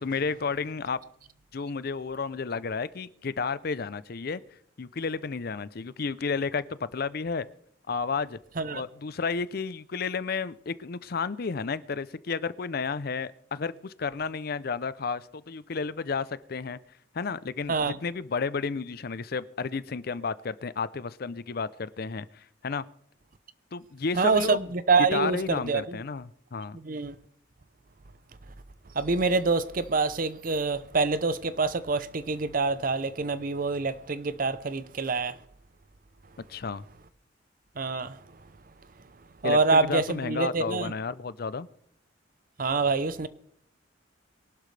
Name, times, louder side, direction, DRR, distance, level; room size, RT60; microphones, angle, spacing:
voice 1, 0.0-1.0 1.5-4.4 4.8-7.5 7.9-8.4 8.7-16.8 17.1-22.8 23.7-24.7 25.0-26.8 36.5-36.8 39.4-41.7, left 5 dB, 50° left, 0.5 m, -32 dB
voice 2, 24.2-26.0 26.8-27.2 29.0-35.3 37.8-38.2 39.4-40.9 42.6-43.3, right 4 dB, 45° right, 0.7 m, -26 dB
23.0 x 11.5 x 3.3 m
head